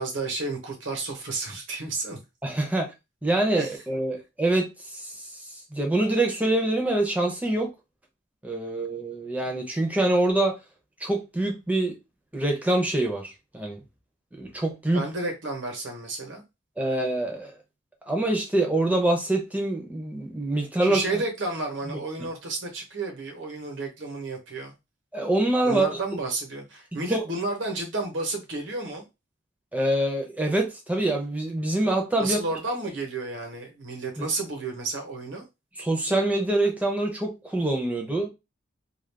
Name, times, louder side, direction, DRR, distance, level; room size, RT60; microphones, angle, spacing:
voice 1, 0.0-2.2 3.6-3.8 14.9-16.4 20.8-24.7 25.6-29.0 32.2-35.4, right 2 dB, 65° right, 1.0 m, -31 dB
voice 2, 2.4-2.9 3.2-5.1 5.7-7.7 8.4-10.6 11.0-12.0 12.3-13.8 14.4-15.1 16.8-17.5 18.1-21.0 25.1-25.9 27.1-27.2 29.7-32.4 34.2-34.3 35.8-38.3, right 2 dB, 10° right, 0.6 m, -25 dB
2.4 x 2.3 x 3.4 m
head